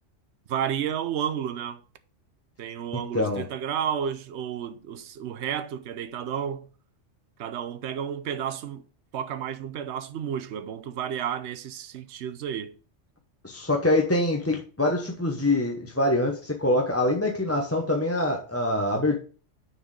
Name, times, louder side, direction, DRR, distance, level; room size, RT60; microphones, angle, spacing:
voice 1, 0.5-1.8 2.6-6.7 7.4-8.8 9.1-12.8, right 8 dB, 70° right, 1.0 m, -31 dB
voice 2, 2.9-3.5 13.4-19.2, left 1 dB, 15° left, 0.8 m, -25 dB
6.6 x 4.5 x 6.5 m
omnidirectional pair, 1.3 m